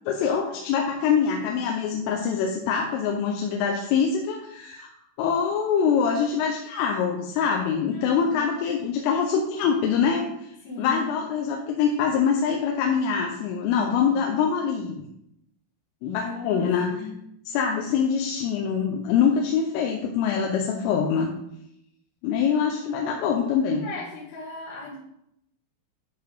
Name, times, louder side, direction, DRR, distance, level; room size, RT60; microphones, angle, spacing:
voice 1, 0.1-4.9 5.2-10.3 10.8-15.0 16.0-16.9 17.5-21.3 22.2-23.9, left 6 dB, 90° left, 2 dB, 3.3 m, -24 dB
voice 2, 7.9-8.6 10.6-11.1 16.2-16.6 16.9-17.2 22.8-23.2 23.8-25.0, left 3 dB, 70° left, -8 dB, 3.8 m, -37 dB
10.0 x 4.7 x 4.7 m, 0.78 s
omnidirectional pair, 5.7 m